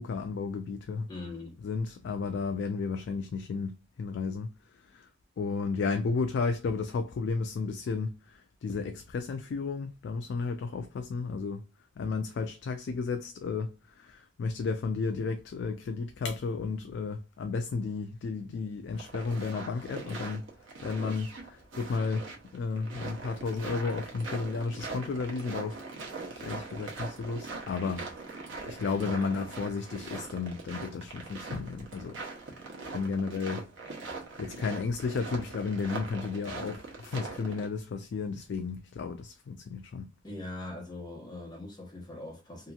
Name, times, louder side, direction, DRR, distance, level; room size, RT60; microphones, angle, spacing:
voice 1, 0.0-1.1 1.6-5.1 5.4-11.7 12.0-20.5 20.8-25.8 26.3-28.1 28.6-32.2 32.9-33.7 34.4-40.1, left 4 dB, 60° left, 0.3 m, -33 dB
voice 2, 1.1-1.5 28.9-29.2 40.2-42.7, left 2 dB, 20° left, 0.9 m, -41 dB
sound 1, 18.9-37.7, right 3 dB, 75° right, 0.9 m, -42 dB
2.9 x 2.5 x 2.3 m
head